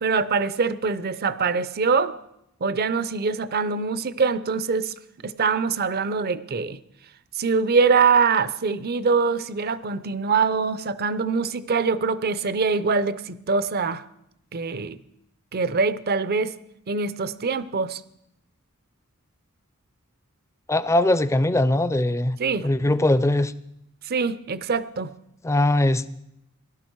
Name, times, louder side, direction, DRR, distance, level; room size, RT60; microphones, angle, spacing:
voice 1, 0.0-2.2 2.6-4.9 5.2-6.8 7.4-14.0 14.5-15.0 15.5-16.5 16.9-18.0 22.4-22.7 24.1-25.1, right 5 dB, 45° right, 15 dB, 0.6 m, -23 dB
voice 2, 20.7-22.4 22.6-23.5 25.4-26.1, left 1 dB, 15° left, 15 dB, 0.5 m, -21 dB
17.5 x 12.0 x 4.6 m, 0.82 s
head